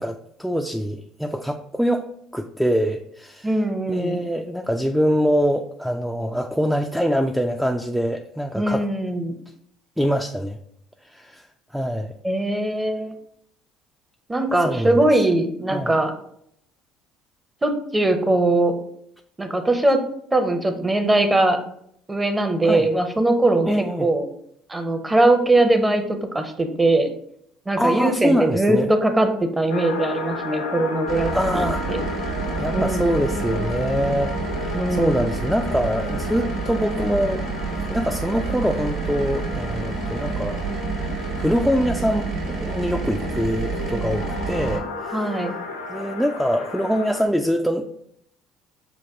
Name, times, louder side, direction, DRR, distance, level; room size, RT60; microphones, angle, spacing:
voice 1, 0.0-2.1 2.3-3.6 3.9-8.9 10.0-10.6 11.0-11.4 11.7-12.1 14.6-15.0 15.7-15.9 22.6-22.9 23.6-24.1 27.8-28.9 31.3-31.8 32.5-37.5 37.9-40.6 41.4-45.3 45.9-47.8, equal, ahead, 3 dB, 0.3 m, -24 dB
voice 2, 3.4-4.2 8.5-9.3 12.2-13.2 14.3-16.1 17.6-18.7 19.4-20.0 20.3-21.6 22.1-23.7 24.0-24.3 24.7-27.1 27.7-32.0 32.7-33.1 34.7-35.3 45.1-45.5, right 2 dB, 15° right, 6 dB, 0.7 m, -21 dB
sound 1, 29.7-47.2, left 3 dB, 85° left, 0.6 m, -33 dB
sound 2, 31.1-44.8, right 4 dB, 60° right, 1.1 m, -29 dB
6.0 x 2.3 x 3.4 m, 0.70 s
hypercardioid pair, 60°, 0 cm